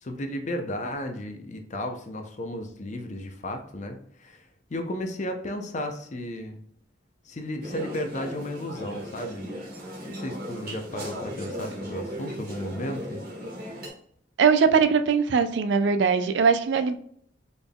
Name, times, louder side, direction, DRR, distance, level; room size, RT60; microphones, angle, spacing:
voice 1, 0.0-6.6 7.3-9.5 10.0-13.2, left 1 dB, 40° left, 5 dB, 0.6 m, -34 dB
sound 1, 7.6-13.9, equal, 50° right, 1.4 m, -37 dB
voice 2, 14.4-17.0, right 5 dB, 65° right, 11 dB, 0.3 m, -21 dB
4.0 x 3.5 x 2.3 m, 0.65 s
head